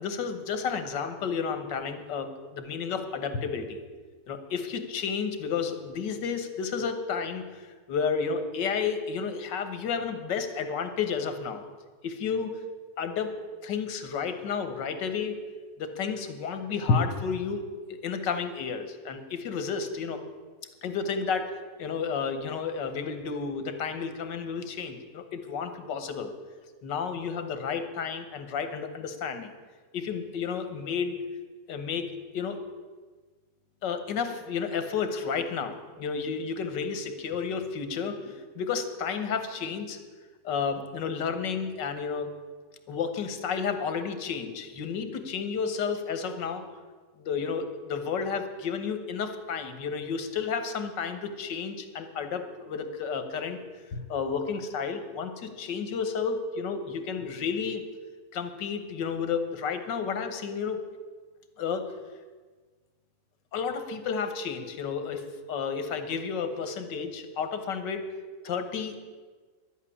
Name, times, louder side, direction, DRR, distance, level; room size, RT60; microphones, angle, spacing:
voice 1, 0.0-3.8 4.3-11.6 12.0-12.6 13.0-15.4 15.8-17.6 17.9-20.2 20.8-26.3 26.8-29.5 29.9-31.2 31.7-32.6 33.8-40.0 40.4-42.3 42.9-46.6 47.2-53.6 53.9-57.8 58.3-60.8 61.6-61.9 63.5-68.1 68.4-69.0, left 6 dB, 90° left, 8 dB, 1.8 m, -31 dB
12.0 x 8.2 x 9.9 m, 1.4 s
omnidirectional pair, 1.9 m